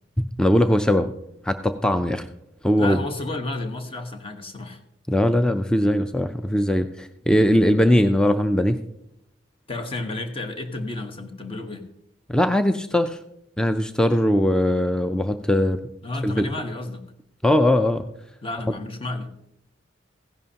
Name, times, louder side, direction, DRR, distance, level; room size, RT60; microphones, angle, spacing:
voice 1, 0.4-1.1 1.4-2.3 2.6-3.0 5.1-8.8 12.3-13.2 13.6-15.8 16.2-16.5 17.4-18.0, left 1 dB, 5° left, 9 dB, 0.3 m, -20 dB
voice 2, 2.8-4.8 9.7-11.9 16.0-17.0 18.4-19.5, left 2 dB, 30° left, 6 dB, 1.2 m, -31 dB
16.0 x 10.5 x 2.8 m, 0.78 s
head